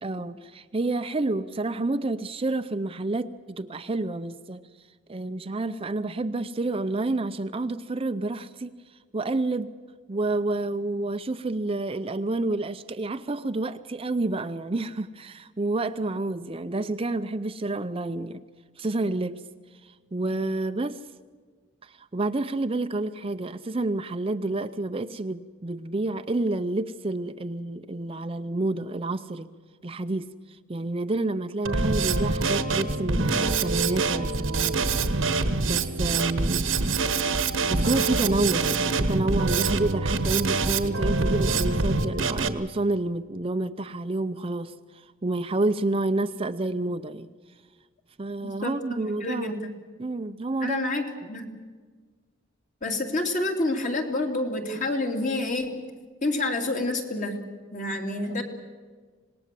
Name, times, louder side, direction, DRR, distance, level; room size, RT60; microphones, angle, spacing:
voice 1, 0.0-4.6 5.1-8.7 9.1-9.7 10.1-18.4 18.8-19.4 19.8-21.0 21.8-29.5 29.8-34.8 35.1-35.2 35.6-36.7 37.4-47.3 48.2-49.6 50.0-50.8, right 2 dB, 30° right, 10 dB, 0.6 m, -29 dB
Drum kit, 31.7-42.5, right 3 dB, 80° right, 1.3 m, -25 dB
voice 2, 48.4-49.6 50.6-51.5 52.8-55.8 56.2-57.4 57.7-58.4, left 2 dB, 40° left, 3 dB, 2.9 m, -28 dB
26.0 x 19.5 x 7.6 m, 1.5 s
head